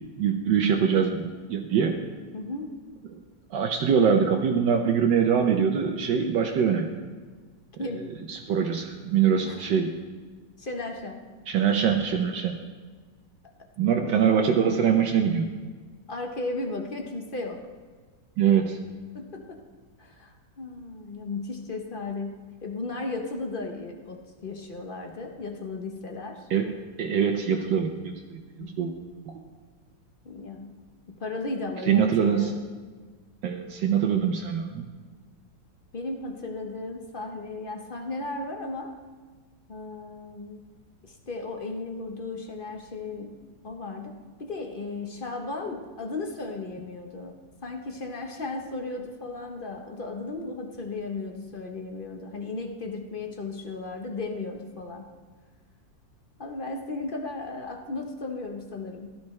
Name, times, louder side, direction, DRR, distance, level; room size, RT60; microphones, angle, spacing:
voice 1, 0.2-2.0 3.5-6.9 8.3-9.9 11.5-12.5 13.8-15.4 18.4-18.8 26.5-26.7 27.0-28.0 28.3-28.9 29.3-29.4 31.9-32.5 33.4-34.8, right 7 dB, 75° right, 2 dB, 1.4 m, -23 dB
voice 2, 2.3-2.8 7.8-8.1 9.5-9.6 10.6-11.3 14.0-14.1 16.1-17.6 19.1-19.6 20.0-26.5 28.6-28.9 30.2-30.8 31.1-32.6 35.9-38.9 39.7-40.6 41.0-43.4 43.6-55.1 56.4-59.1, left 3 dB, 40° left, 3 dB, 0.8 m, -35 dB
16.5 x 12.0 x 3.2 m, 1.4 s
omnidirectional pair, 2.0 m